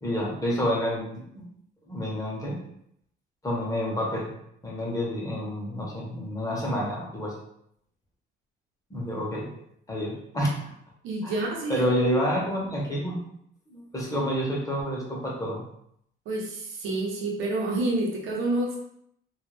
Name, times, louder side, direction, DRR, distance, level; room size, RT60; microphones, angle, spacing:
voice 1, 0.0-1.5 1.8-2.6 3.4-4.3 4.6-7.4 8.9-9.6 9.9-10.5 11.2-11.4 11.7-13.2 13.7-15.6, equal, 15° left, -4 dB, 0.8 m, -29 dB
voice 2, 11.0-11.9 16.3-18.8, right 2 dB, 80° right, 0 dB, 0.8 m, -28 dB
2.3 x 2.0 x 3.2 m, 0.71 s
cardioid pair, 135°, 20 cm